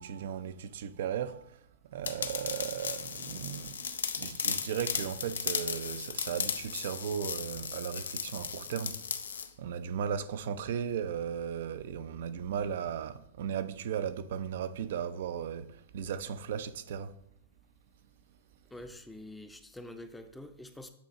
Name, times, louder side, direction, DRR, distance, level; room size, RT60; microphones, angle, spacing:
voice 1, 0.0-9.0 9.3-17.2, right 8 dB, 65° right, 0.4 m, -36 dB
sound 1, 2.0-9.5, left 6 dB, 85° left, 0.5 m, -36 dB
voice 2, 18.7-20.9, left 1 dB, 5° left, 0.5 m, -46 dB
8.1 x 2.8 x 4.2 m
hypercardioid pair, 125°, 0 cm